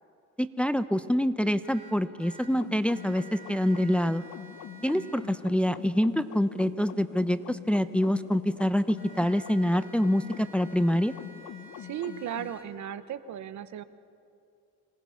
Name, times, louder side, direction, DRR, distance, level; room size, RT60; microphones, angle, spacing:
voice 1, 0.4-4.2 4.8-11.1, equal, 5° left, 11 dB, 0.7 m, -26 dB
sound 1, 1.6-2.5 2.9-5.2 9.0-12.6, right 2 dB, 45° left, 5.8 m, -51 dB
sound 2, 2.5-12.5, left 10 dB, 75° left, 1.1 m, -44 dB
voice 2, 11.8-13.8, right 10 dB, 70° right, 12 dB, 1.0 m, -36 dB
26.0 x 18.5 x 5.8 m, 2.5 s
cardioid pair, 90°, 30 cm